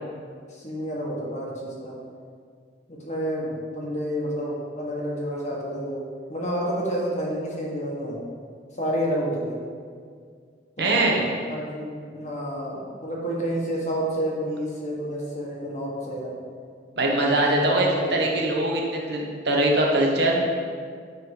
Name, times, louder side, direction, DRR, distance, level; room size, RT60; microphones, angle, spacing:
voice 1, 0.5-1.9 2.9-6.0 6.3-8.2 8.7-9.6 10.8-11.2 11.5-16.3 17.2-18.3, equal, 40° left, -3 dB, 1.6 m, -29 dB
voice 2, 10.8-11.2 17.0-20.4, right 1 dB, 60° right, -1 dB, 1.2 m, -22 dB
9.6 x 4.0 x 5.5 m, 2.1 s
head